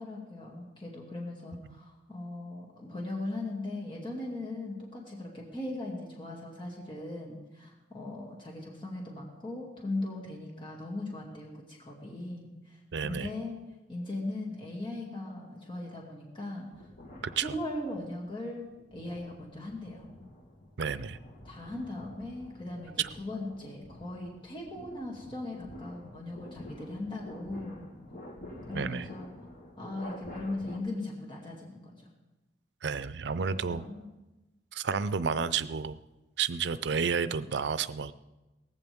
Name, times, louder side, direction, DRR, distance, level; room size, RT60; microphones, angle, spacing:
voice 1, 0.0-13.6 13.9-16.8 17.4-18.7 18.9-20.1 21.4-27.9 28.7-29.3 29.8-32.1 33.4-34.1, left 2 dB, 30° left, -3 dB, 2.5 m, -39 dB
voice 2, 12.9-13.3 17.4-17.5 20.8-21.2 23.0-23.1 28.7-29.1 32.8-33.8 34.7-36.0 36.4-38.1, right 6 dB, 75° right, 15 dB, 0.5 m, -31 dB
sound 1, 16.7-18.2 18.7-30.8, left 1 dB, 50° left, 2.2 m, -49 dB
18.0 x 15.0 x 3.6 m, 1.1 s
head